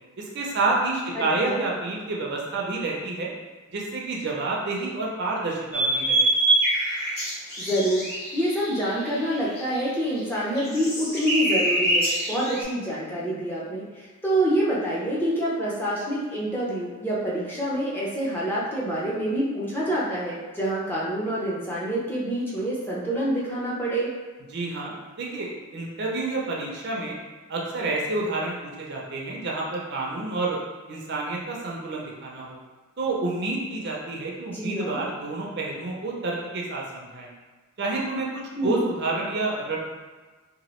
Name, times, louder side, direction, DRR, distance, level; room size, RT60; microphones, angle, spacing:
voice 1, 0.2-3.3 3.7-6.3 24.5-27.2 27.5-30.6 30.9-32.6 33.0-37.3 37.8-39.8, right 3 dB, 50° right, -2 dB, 0.5 m, -29 dB
voice 2, 1.2-1.6 7.6-8.0 8.3-24.1 34.5-35.0 38.5-38.8, right 1 dB, 10° left, -7 dB, 0.5 m, -27 dB
sound 1, 5.7-9.8 10.2-12.6, right 1 dB, 45° left, 0.9 m, -25 dB
2.8 x 2.3 x 3.0 m, 1.3 s
head